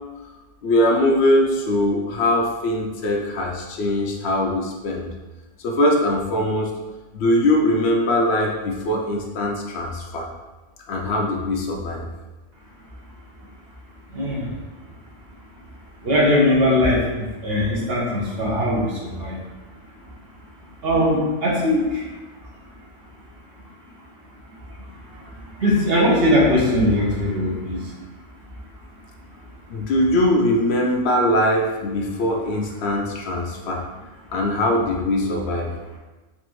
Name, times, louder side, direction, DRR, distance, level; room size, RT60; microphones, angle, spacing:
voice 1, 0.6-5.1 5.6-6.8 7.1-10.3 10.9-12.1 29.7-33.8 34.3-35.7, left 1 dB, 70° left, 0 dB, 0.8 m, -21 dB
voice 2, 14.1-14.5 16.0-19.4 20.8-22.0 25.6-27.9, left 1 dB, 60° right, -5 dB, 1.2 m, -20 dB
4.2 x 2.6 x 3.0 m, 1.2 s
omnidirectional pair, 1.2 m